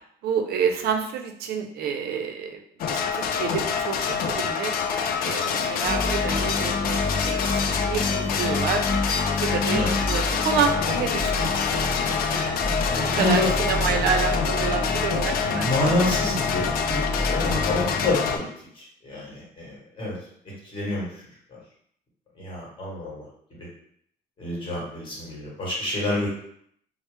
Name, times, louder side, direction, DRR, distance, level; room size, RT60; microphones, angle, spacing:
voice 1, 0.2-2.6 2.9-7.5 7.7-8.8 9.4-9.8 10.1-11.8 12.3-12.7 13.0-15.7, right 6 dB, 70° right, 5 dB, 0.5 m, -28 dB
sound 1, 2.8-18.4, left 6 dB, 60° left, 0.4 m, -26 dB
sound 2, 5.8-18.1, left 2 dB, 10° left, 0.7 m, -29 dB
voice 2, 12.7-13.5 15.3-20.2 20.4-21.2 21.5-21.6 22.3-23.7 24.4-26.3, left 2 dB, 30° left, -5 dB, 1.4 m, -28 dB
2.9 x 2.0 x 3.2 m, 0.67 s
cardioid pair, 110°, 17 cm